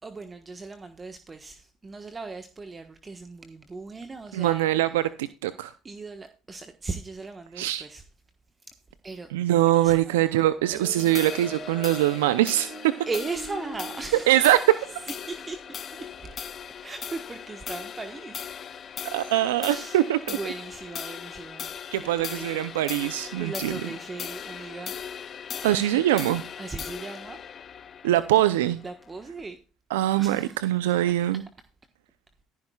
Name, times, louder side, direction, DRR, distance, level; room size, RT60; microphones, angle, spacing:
voice 1, 0.0-4.7 5.8-8.0 9.0-9.3 9.6-10.2 13.1-14.5 15.1-16.5 16.8-18.5 19.6-20.0 20.3-21.7 21.9-22.8 23.4-24.9 26.6-27.4 28.8-29.6 30.2-30.6, right 3 dB, 25° right, 1.3 m, -38 dB
voice 2, 4.3-5.7 7.6-7.9 9.3-12.9 14.3-14.6 19.1-20.4 21.9-23.8 25.6-26.4 28.0-28.8 29.9-31.4, right 14 dB, 85° right, 0.5 m, -23 dB
sound 1, 10.2-15.4, right 3 dB, 50° right, 6.5 m, -43 dB
sound 2, 10.9-29.5, left 8 dB, 45° left, 0.7 m, -39 dB
14.0 x 11.0 x 2.4 m
hypercardioid pair, 65°, 0 cm